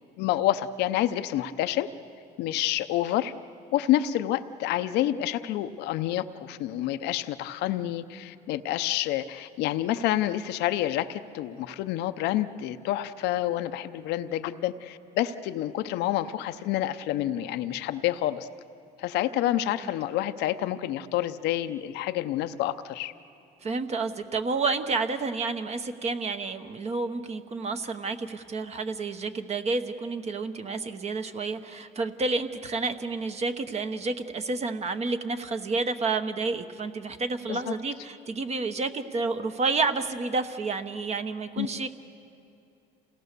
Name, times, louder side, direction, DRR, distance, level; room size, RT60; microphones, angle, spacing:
voice 1, 0.2-1.9 2.4-3.3 3.7-18.5 19.0-23.1 37.5-37.7 41.6-41.7, left 13 dB, 85° left, 10 dB, 0.7 m, -28 dB
voice 2, 23.6-41.9, right 3 dB, 40° right, 8 dB, 1.0 m, -30 dB
28.0 x 17.5 x 6.8 m, 2.6 s
cardioid pair, 110°, 17 cm